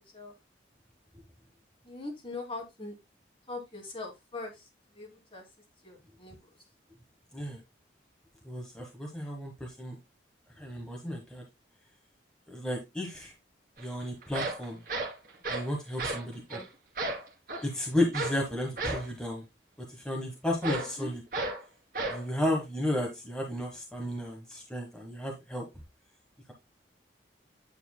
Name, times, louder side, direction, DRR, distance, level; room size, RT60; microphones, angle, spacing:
voice 1, 1.8-2.9 3.5-4.6 4.9-5.4 5.8-6.4 20.7-21.1, left 2 dB, 30° left, -1 dB, 2.5 m, -41 dB
voice 2, 8.4-10.0 10.6-11.4 12.5-13.3 13.8-14.8 15.5-16.6 17.6-19.4 19.9-21.2 22.1-25.6, left 1 dB, 5° left, -1 dB, 1.3 m, -33 dB
sound 1, 13.8-13.9 14.2-15.7 16.0-16.2 16.5-16.6 17.0-17.7 18.1-18.4 18.8-19.1 20.6-20.9 21.3-21.6 21.9-22.2, right 2 dB, 50° right, 1.8 m, -33 dB
9.5 x 6.8 x 2.2 m, 0.22 s
head